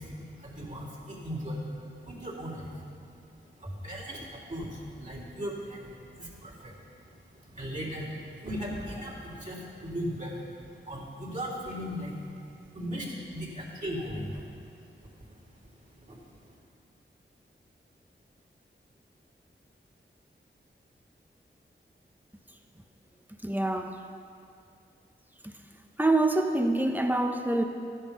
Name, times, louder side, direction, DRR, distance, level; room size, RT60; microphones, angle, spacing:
voice 1, 0.0-16.6, equal, 40° right, -4 dB, 3.5 m, -38 dB
voice 2, 23.4-24.0 25.4-25.5 26.0-27.6, right 2 dB, 10° right, 4 dB, 1.0 m, -26 dB
13.5 x 10.0 x 5.4 m, 2.5 s
cardioid pair, 45°, 20 cm